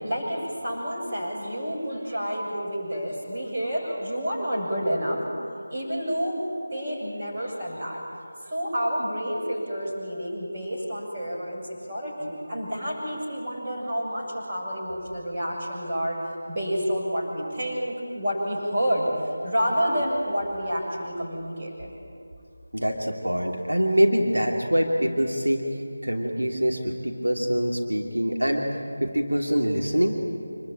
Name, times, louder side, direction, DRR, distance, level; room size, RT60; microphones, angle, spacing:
voice 1, 0.0-5.2 5.7-6.4 6.7-8.0 8.4-16.2 16.5-19.1 19.4-21.9, equal, 30° right, -4 dB, 7.4 m, -29 dB
voice 2, 22.7-28.7 29.0-30.2, equal, 90° right, 0 dB, 3.0 m, -24 dB
26.5 x 22.0 x 8.9 m, 2.4 s
figure-of-eight pair, 165°, 0 cm